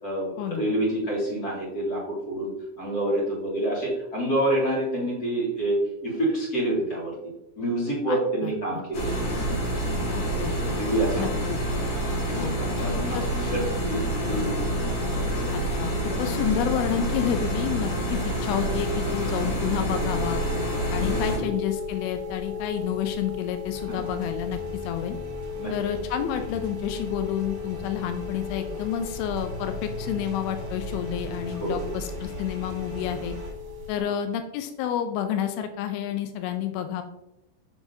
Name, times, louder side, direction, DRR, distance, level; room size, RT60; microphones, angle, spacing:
voice 1, 0.0-2.5 2.8-5.8 6.0-7.2 7.6-9.4 10.4-11.3 12.3-13.6 13.8-14.7 19.4-19.5 21.0-21.5 23.9-24.0 25.6-25.7 31.5-31.9 34.0-34.1, right 1 dB, 30° left, -5 dB, 2.2 m, -28 dB
voice 2, 8.1-8.5 10.2-10.8 11.2-11.6 12.4-12.6 13.1-13.2 15.5-20.4 20.9-25.2 25.7-33.4 33.9-37.0, left 9 dB, 90° left, 8 dB, 2.5 m, -30 dB
sound 1, 8.9-21.4, right 1 dB, 55° left, 1.7 m, -27 dB
sound 2, 19.9-34.0, left 6 dB, 75° right, 2.7 m, -36 dB
sound 3, 23.7-33.5, right 1 dB, 50° right, 1.9 m, -39 dB
7.1 x 6.2 x 2.7 m, 0.86 s
omnidirectional pair, 4.3 m